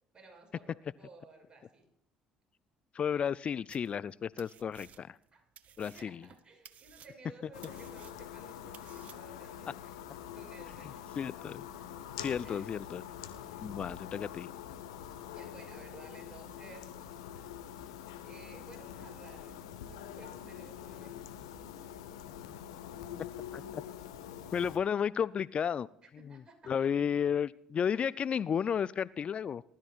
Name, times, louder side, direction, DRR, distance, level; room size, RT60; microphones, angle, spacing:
voice 1, 0.1-1.9 5.3-5.4 5.8-9.9 10.3-11.1 12.4-12.7 13.4-13.6 15.3-17.0 18.2-19.6 19.8-21.3 26.2-26.9 27.9-28.1, right 3 dB, 30° right, 4 dB, 5.7 m, -55 dB
voice 2, 2.9-5.2 5.8-6.3 11.2-11.6 12.2-13.0 13.6-14.5 23.5-23.8 24.5-25.9 26.1-29.6, left 7 dB, 45° left, 20 dB, 0.4 m, -33 dB
sound 1, 3.7-4.1 4.4-5.3 5.6-9.5, right 9 dB, 55° right, 0.9 m, -56 dB
sound 2, 7.5-24.8, left 9 dB, 85° left, 1.1 m, -45 dB
19.5 x 13.0 x 2.4 m, 0.75 s
hypercardioid pair, 60°, 3 cm